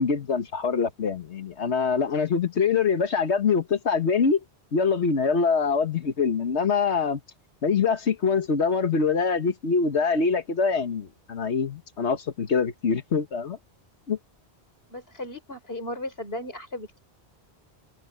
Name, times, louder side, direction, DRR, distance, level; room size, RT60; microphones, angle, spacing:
voice 1, 0.0-4.4 4.7-7.2 7.6-13.6 14.1-14.2, left 5 dB, 85° left, 1.7 m, -24 dB
voice 2, 14.9-17.0, left 1 dB, 65° left, 4.9 m, -36 dB
omnidirectional pair, 1.1 m